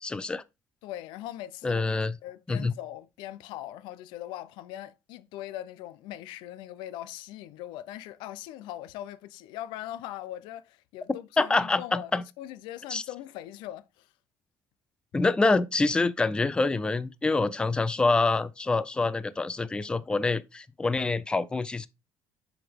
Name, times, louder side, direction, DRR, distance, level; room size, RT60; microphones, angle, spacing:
voice 1, 0.0-0.4 1.6-2.1 2.5-2.7 11.4-12.2 12.9-13.0 15.1-21.9, left 3 dB, 10° left, 0.4 m, -26 dB
voice 2, 0.8-1.8 2.2-12.1 12.4-14.1, left 13 dB, 85° left, 0.5 m, -40 dB
6.3 x 4.9 x 3.6 m
cardioid pair, 125°, 8 cm